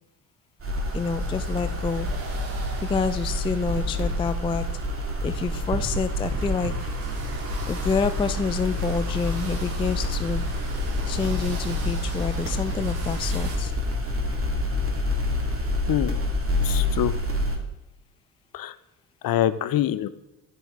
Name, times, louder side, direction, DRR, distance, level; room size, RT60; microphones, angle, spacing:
sound 1, 0.6-17.6, left 1 dB, 25° right, 2.1 m, -28 dB
sound 2, 0.7-13.6, right 3 dB, 80° right, 1.8 m, -38 dB
voice 1, 0.9-2.1 2.8-4.7 5.2-6.7 7.7-10.4 11.1-13.7, left 5 dB, 10° left, 11 dB, 0.3 m, -28 dB
voice 2, 16.6-17.1 18.5-18.7 19.2-20.1, left 12 dB, 45° left, 15 dB, 0.7 m, -25 dB
10.5 x 9.1 x 3.2 m, 0.97 s
hypercardioid pair, 50°, 49 cm